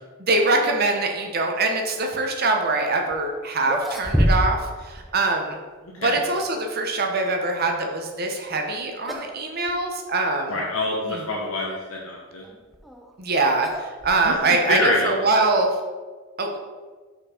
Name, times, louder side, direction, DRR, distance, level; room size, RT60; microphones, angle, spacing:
voice 1, 0.2-5.6 6.0-10.5 11.0-11.2 13.2-15.7 16.4-16.6, right 3 dB, 45° right, 3 dB, 0.8 m, -23 dB
sound 1, 3.1-3.2 3.6-4.7 5.0-5.1 6.0-6.7 8.5-8.7 9.1-9.4 9.7-9.8 10.6-10.7 12.4-14.6, equal, ahead, 0.4 m, -27 dB
voice 2, 5.8-6.2 10.5-12.4 14.2-15.1, left 2 dB, 70° left, -2 dB, 0.8 m, -26 dB
5.1 x 4.3 x 5.0 m, 1.4 s
head